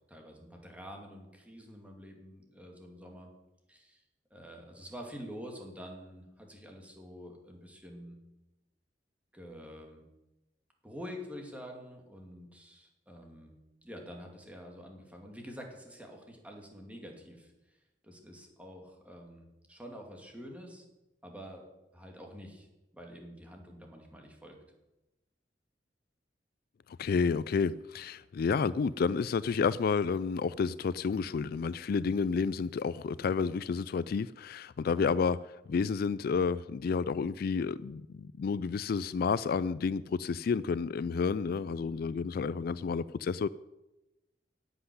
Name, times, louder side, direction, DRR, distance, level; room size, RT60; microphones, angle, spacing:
voice 1, 0.1-3.3 3.7-4.0 4.3-8.2 9.3-10.0 10.8-13.5 13.8-17.5 18.0-20.9 21.2-21.6 21.9-22.7 22.9-24.6, equal, 10° right, 2.6 m, -47 dB
voice 2, 26.9-35.4 35.7-43.5, left 5 dB, 55° left, 0.3 m, -30 dB
11.0 x 8.0 x 10.0 m
head